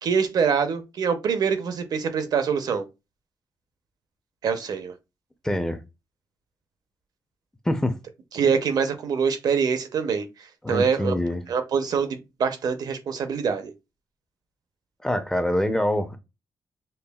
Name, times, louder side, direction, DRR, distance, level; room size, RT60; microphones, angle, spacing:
voice 1, 0.0-2.8 4.4-4.9 8.3-11.1 11.5-13.7, right 6 dB, 65° right, 0.6 m, -25 dB
voice 2, 5.4-5.8 7.6-8.0 10.6-11.4 15.0-16.2, left 1 dB, 10° left, 0.5 m, -25 dB
5.3 x 2.3 x 2.3 m
cardioid pair, 115°, 7 cm